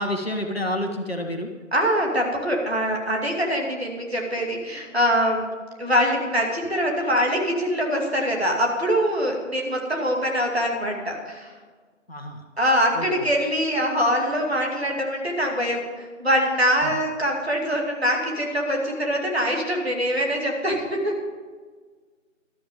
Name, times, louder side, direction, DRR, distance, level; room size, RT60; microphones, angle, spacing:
voice 1, 0.0-1.5 12.1-12.4 12.9-13.1 16.8-16.9, left 1 dB, 50° left, 3 dB, 1.6 m, -28 dB
voice 2, 1.7-5.5 5.8-11.5 12.6-21.3, equal, 50° right, 0 dB, 2.7 m, -23 dB
12.5 x 11.5 x 5.1 m, 1.5 s
figure-of-eight pair, 170°, 39 cm